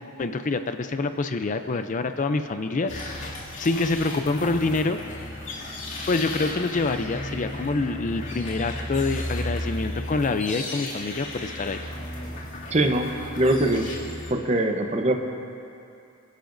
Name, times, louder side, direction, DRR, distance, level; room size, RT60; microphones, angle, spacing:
voice 1, 0.2-2.9 3.6-5.0 6.1-11.8, left 3 dB, 35° left, 8 dB, 0.4 m, -26 dB
sound 1, 2.9-14.3, left 1 dB, 55° left, 2.5 m, -34 dB
voice 2, 12.7-13.1 13.4-13.9 14.3-15.2, right 1 dB, 30° right, 4 dB, 0.8 m, -22 dB
27.5 x 11.5 x 2.6 m, 2.6 s
head